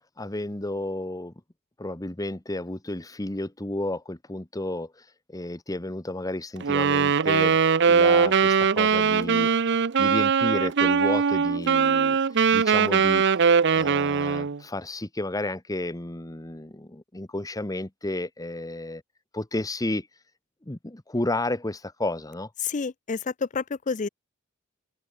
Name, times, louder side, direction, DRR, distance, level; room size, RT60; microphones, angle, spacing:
voice 1, 0.2-1.3 1.8-7.6 7.9-9.5 10.0-12.2 12.5-13.3 13.7-19.0 19.3-20.1 20.6-22.5, left 1 dB, 15° left, 1.2 m, -32 dB
Wind instrument woodwind instrument, 6.6-14.6, right 6 dB, 55° right, 0.6 m, -21 dB
voice 2, 22.6-24.1, left 5 dB, 35° left, 0.5 m, -29 dB
open air
head